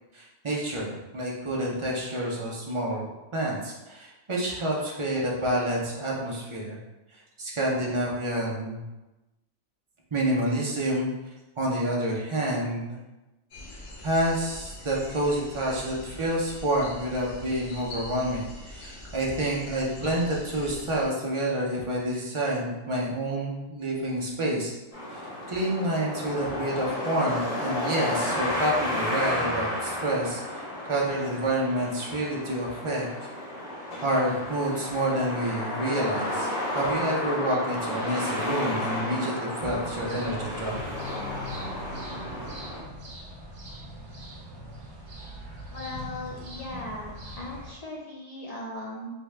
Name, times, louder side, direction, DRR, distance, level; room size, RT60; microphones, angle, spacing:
voice 1, 0.1-6.8 7.1-8.9 10.1-11.1 11.6-13.0 14.0-24.7 25.1-25.2 25.5-33.3 34.0-40.8, right 1 dB, 45° right, -4 dB, 0.4 m, -28 dB
sound 1, 13.5-21.1, left 1 dB, 85° left, 1.1 m, -43 dB
sound 2, 24.9-42.8, left 1 dB, 35° left, 0.8 m, -32 dB
sound 3, 39.6-47.7, right 1 dB, 65° right, 1.0 m, -42 dB
voice 2, 45.7-49.1, left 2 dB, 70° left, -4 dB, 0.3 m, -38 dB
3.5 x 2.2 x 3.2 m, 1.0 s
omnidirectional pair, 1.3 m